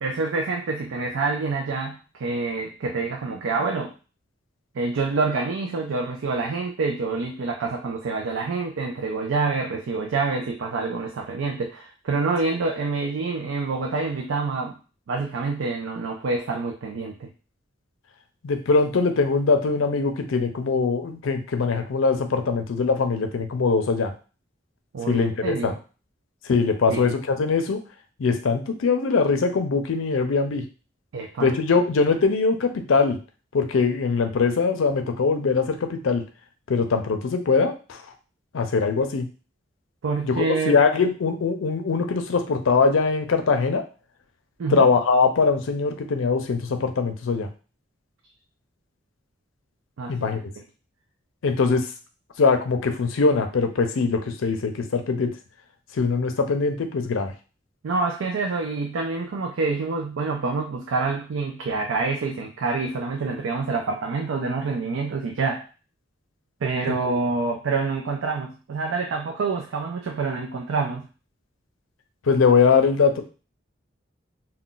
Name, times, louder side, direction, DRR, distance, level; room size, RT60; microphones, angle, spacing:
voice 1, 0.0-3.9 4.7-14.8 15.1-17.3 24.9-25.8 26.9-27.2 31.1-31.5 40.0-40.8 44.6-44.9 50.0-50.3 57.8-65.7 66.6-71.1, right 4 dB, 85° right, 1 dB, 0.4 m, -27 dB
voice 2, 18.4-24.1 25.1-25.7 26.5-27.8 28.2-30.6 31.4-33.2 33.5-36.2 36.7-38.0 38.5-39.3 40.2-43.8 44.7-47.5 50.1-50.4 51.4-51.9 52.4-55.3 55.9-57.3 67.1-67.2 72.3-73.2, left 4 dB, 85° left, 6 dB, 0.5 m, -22 dB
2.4 x 2.2 x 3.7 m, 0.35 s
head